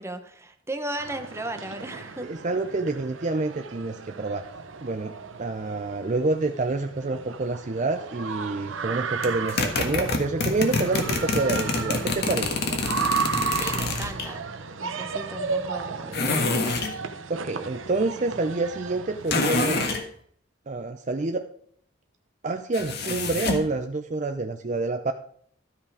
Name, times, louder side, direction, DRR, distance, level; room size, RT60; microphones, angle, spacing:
voice 1, 0.0-2.3 13.5-14.5 14.8-16.7, right 1 dB, 15° right, 6 dB, 1.0 m, -36 dB
sound 1, 1.0-19.9, right 5 dB, 85° right, 0.9 m, -34 dB
voice 2, 2.2-4.5 4.8-5.1 5.4-12.6 17.3-19.8 20.7-21.4 22.4-25.1, right 3 dB, 40° right, 6 dB, 0.6 m, -28 dB
sound 2, 9.2-14.3 16.1-17.0 19.3-20.0 22.7-23.7, left 3 dB, 55° left, 1.5 m, -26 dB
13.0 x 5.7 x 4.9 m, 0.62 s
head